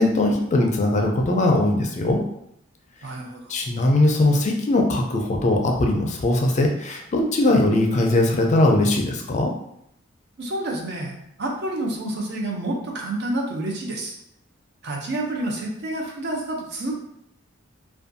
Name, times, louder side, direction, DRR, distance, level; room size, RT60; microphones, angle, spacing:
voice 1, 0.0-2.2 3.5-9.5, left 2 dB, 35° left, 2 dB, 0.4 m, -20 dB
voice 2, 3.0-3.5 10.4-14.1 14.8-16.9, right 1 dB, 55° right, 0 dB, 0.5 m, -29 dB
2.5 x 2.2 x 2.5 m, 0.76 s
head